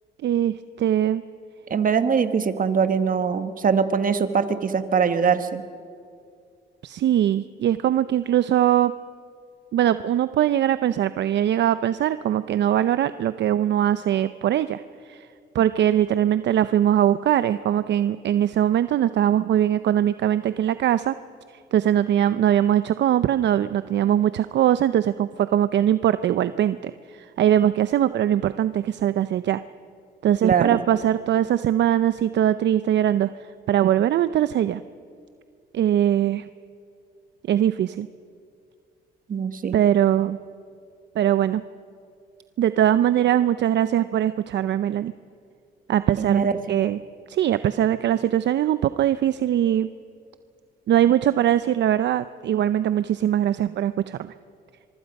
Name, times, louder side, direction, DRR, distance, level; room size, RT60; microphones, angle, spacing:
voice 1, 0.2-1.2 6.8-8.9 9.7-15.3 15.5-21.1 21.5-29.6 30.2-33.3 33.7-34.8 35.7-36.4 37.5-38.1 39.7-40.4 41.2-41.6 42.6-45.1 45.9-47.0 47.3-49.9 50.9-54.3, right 11 dB, 65° right, 13 dB, 0.6 m, -21 dB
voice 2, 1.7-5.6 30.4-30.8 39.3-39.8 46.2-46.5, right 6 dB, 45° right, 10 dB, 1.4 m, -22 dB
24.5 x 24.0 x 5.4 m, 2.3 s
cardioid pair, 90°, 20 cm